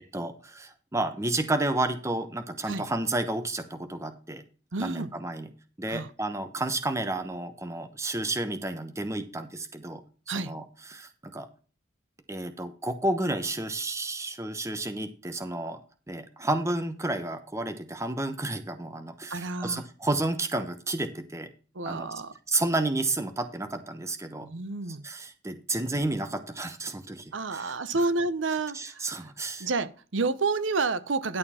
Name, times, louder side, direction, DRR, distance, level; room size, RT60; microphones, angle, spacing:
voice 1, 0.1-4.4 4.8-5.5 5.8-10.0 10.3-10.6 10.9-11.5 12.3-15.8 16.1-21.5 21.9-22.1 22.5-24.5 25.0-27.2 27.5-27.7 28.7-29.7, right 2 dB, 15° right, 1.0 m, -31 dB
voice 2, 4.7-5.1 5.9-6.1 10.3-10.5 19.3-19.9 21.7-22.3 24.4-25.0 27.3-29.3 29.6-31.4, right 3 dB, 90° right, 0.8 m, -30 dB
11.0 x 6.8 x 4.3 m
head